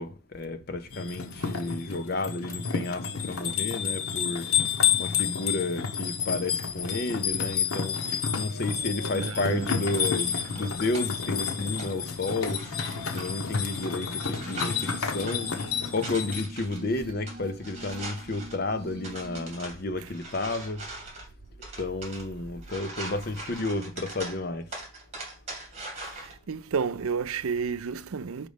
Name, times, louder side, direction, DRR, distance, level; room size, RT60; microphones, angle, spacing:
voice 1, 0.0-4.6 5.0-12.7 13.1-15.5 15.9-20.8 21.8-24.8, left 2 dB, 45° left, 0.7 m, -32 dB
sound 1, 0.9-16.5, left 7 dB, 85° left, 1.1 m, -30 dB
voice 2, 9.1-9.7 26.1-28.5, right 5 dB, 85° right, 0.5 m, -31 dB
sound 2, 9.4-26.3, right 2 dB, 30° right, 2.4 m, -43 dB
Glass, 14.3-19.5, equal, 5° right, 1.2 m, -46 dB
5.2 x 5.1 x 5.1 m
head